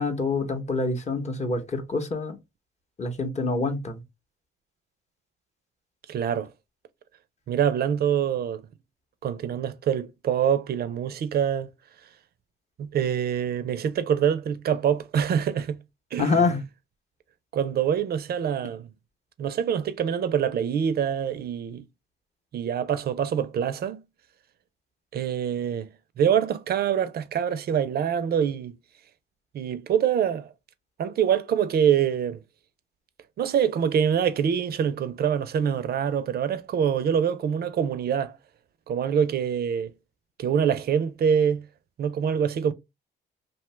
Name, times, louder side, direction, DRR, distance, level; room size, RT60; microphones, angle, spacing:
voice 1, 0.0-2.4 3.0-4.0 16.2-16.6, left 3 dB, 35° left, 0.7 m, -26 dB
voice 2, 6.1-6.5 7.5-8.6 9.2-11.7 12.8-15.8 16.1-16.5 17.5-18.9 19.4-21.8 22.5-24.0 25.1-25.9 26.2-28.8 29.5-30.5 31.0-32.4 33.4-38.4 38.9-39.9 40.4-41.7 42.0-42.7, right 8 dB, 55° right, 0.4 m, -25 dB
2.7 x 2.2 x 3.1 m
cardioid pair, 90°, 20 cm